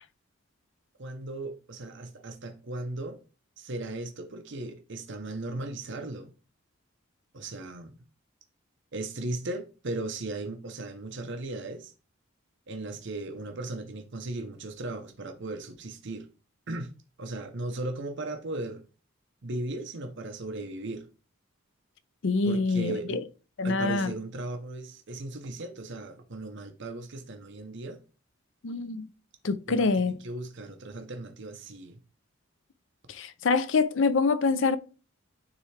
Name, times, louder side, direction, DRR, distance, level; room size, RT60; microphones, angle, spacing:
voice 1, 1.0-3.2 3.6-6.3 7.3-7.9 8.9-11.9 12.7-16.3 16.7-16.9 17.2-18.8 19.4-21.1 22.4-23.2 23.6-28.0 29.7-32.0, right 2 dB, 55° right, 0.8 m, -37 dB
voice 2, 22.2-23.2 23.6-24.1 28.6-29.1 29.4-30.2 33.1-34.8, left 4 dB, 60° left, 0.5 m, -25 dB
9.7 x 3.4 x 3.3 m
head